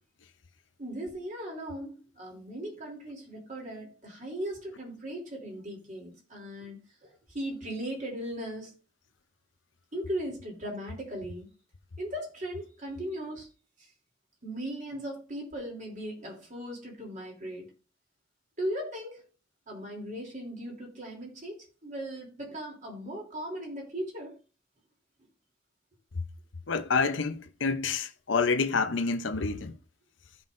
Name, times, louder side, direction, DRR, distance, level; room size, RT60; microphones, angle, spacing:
voice 1, 0.8-8.7 9.9-11.5 12.0-13.5 13.8-13.9 14.4-17.7 18.6-19.2 19.7-24.4, right 1 dB, 45° right, 3.2 m, -38 dB
voice 2, 26.7-29.7, left 4 dB, 80° left, 0.8 m, -28 dB
16.0 x 5.6 x 2.6 m
head